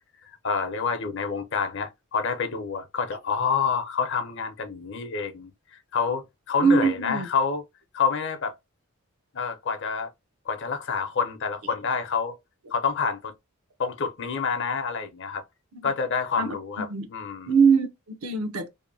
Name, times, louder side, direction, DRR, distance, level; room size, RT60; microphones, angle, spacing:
voice 1, 0.4-6.2 6.5-7.6 7.9-8.5 9.3-10.1 10.5-12.4 12.7-13.3 13.8-15.4 15.8-17.5, left 5 dB, 55° left, 0.7 m, -28 dB
voice 2, 6.6-7.3 15.7-15.9 16.4-17.1 17.5-18.7, right 5 dB, 75° right, 0.7 m, -23 dB
2.8 x 2.1 x 2.6 m
head